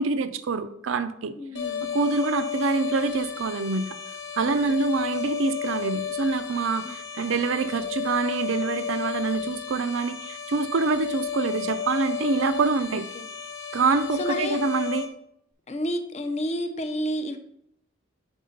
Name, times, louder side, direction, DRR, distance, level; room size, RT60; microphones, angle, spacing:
voice 1, 0.0-1.3 1.9-3.8 4.4-13.0 13.7-15.1, right 4 dB, 70° right, 11 dB, 0.5 m, -25 dB
voice 2, 1.4-2.0 4.4-4.6 6.8-6.9 13.1-13.3 14.2-14.6 15.7-17.4, equal, 30° left, 7 dB, 0.6 m, -30 dB
sound 1, 1.5-15.1, left 8 dB, 60° left, 1.0 m, -33 dB
5.4 x 4.7 x 5.1 m, 0.74 s
head